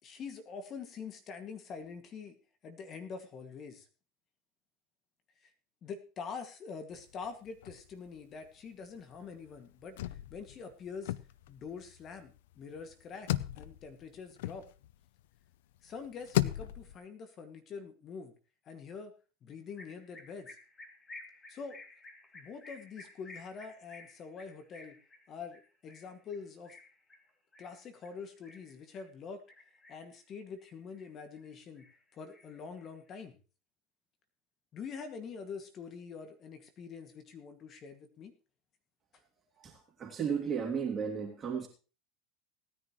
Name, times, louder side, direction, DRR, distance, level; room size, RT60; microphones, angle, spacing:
voice 1, 0.0-2.4 2.6-3.9 5.4-5.5 5.8-11.1 11.5-13.3 13.6-14.7 15.8-18.3 18.7-19.1 19.4-20.6 21.5-21.8 22.3-25.0 25.3-26.8 27.6-29.4 29.9-31.8 32.1-33.4 34.7-38.3, left 5 dB, 40° left, 2.1 m, -45 dB
sound 1, 6.9-8.2 8.4-8.5 8.8-15.2 15.8-17.0, left 15 dB, 75° left, 0.5 m, -36 dB
sound 2, 19.8-29.1 29.5-30.2 30.6-31.5 31.8-33.1, left 2 dB, 25° left, 2.8 m, -54 dB
voice 2, 39.6-41.7, right 6 dB, 30° right, 2.9 m, -34 dB
18.5 x 10.0 x 3.1 m
hypercardioid pair, 90°, 0 cm